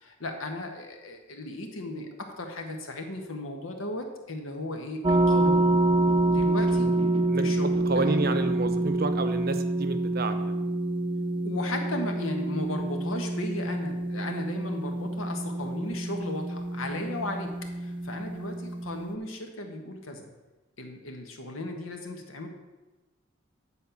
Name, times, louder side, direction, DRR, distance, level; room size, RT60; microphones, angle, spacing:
voice 1, 0.0-5.7 6.3-6.9 7.4-8.2 11.4-17.5 17.8-20.3 20.8-22.5, left 1 dB, 90° left, 3 dB, 1.4 m, -36 dB
sound 1, 5.0-19.1, right 2 dB, 25° right, 0.4 m, -27 dB
voice 2, 7.3-10.6, right 3 dB, 50° right, 9 dB, 0.7 m, -30 dB
9.7 x 4.3 x 7.1 m, 1.2 s
head